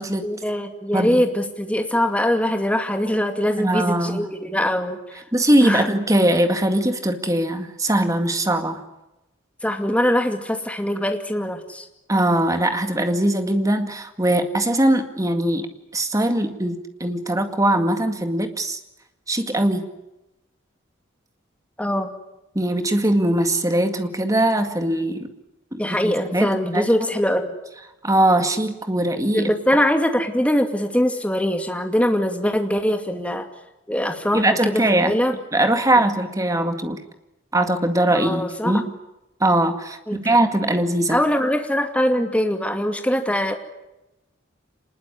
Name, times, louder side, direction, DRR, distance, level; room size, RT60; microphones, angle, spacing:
voice 1, 0.2-5.2 5.6-5.9 9.6-11.9 21.8-22.1 25.8-27.6 29.3-33.5 33.9-35.3 38.1-38.8 40.1-40.4 41.1-43.5, equal, 5° left, 5 dB, 2.4 m, -22 dB
voice 2, 3.6-4.2 5.3-8.8 12.1-15.7 15.9-18.8 19.3-19.8 22.5-25.3 25.7-26.9 28.0-29.5 34.3-35.1 35.5-37.0 37.5-38.8 39.4-41.2, right 1 dB, 15° right, 7 dB, 2.0 m, -21 dB
26.5 x 20.5 x 9.9 m, 0.95 s
head